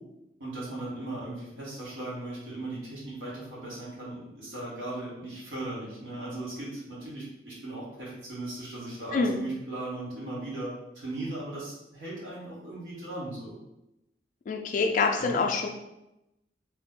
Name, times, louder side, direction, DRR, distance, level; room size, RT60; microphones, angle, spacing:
voice 1, 0.4-13.5 15.2-15.4, right 2 dB, 80° right, -7 dB, 1.4 m, -37 dB
voice 2, 14.5-15.7, left 4 dB, 45° left, 2 dB, 0.3 m, -25 dB
3.2 x 2.1 x 3.6 m, 0.90 s
head